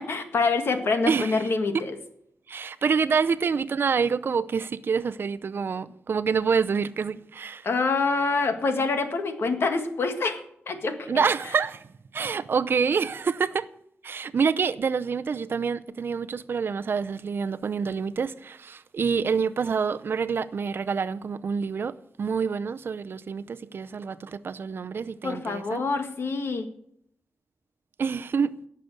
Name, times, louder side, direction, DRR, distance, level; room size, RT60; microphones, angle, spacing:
voice 1, 0.0-2.0 7.6-10.4 10.7-11.2 25.2-26.7, left 4 dB, 65° left, 1.9 m, -26 dB
voice 2, 1.1-1.5 1.7-1.8 2.5-7.7 11.1-11.9 12.1-13.7 14.0-25.8 28.0-28.6, right 5 dB, 55° right, 0.6 m, -27 dB
17.5 x 6.8 x 8.0 m
wide cardioid pair, 140°, 4 cm